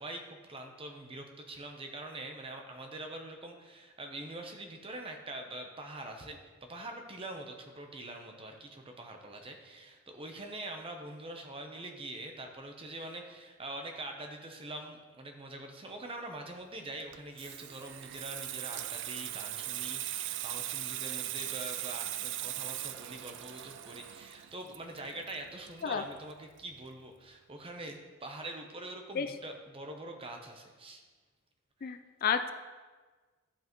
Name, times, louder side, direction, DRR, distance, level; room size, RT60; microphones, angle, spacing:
voice 1, 0.0-6.4 6.7-31.0 31.8-32.0, right 2 dB, 25° right, 3 dB, 0.8 m, -44 dB
Water tap faucet / Sink (filling or washing), 17.0-26.3 26.6-26.9, right 13 dB, 60° right, 0.3 m, -39 dB
voice 2, 31.8-32.5, left 7 dB, 45° left, 9 dB, 0.4 m, -31 dB
11.5 x 5.5 x 3.1 m, 1.4 s
head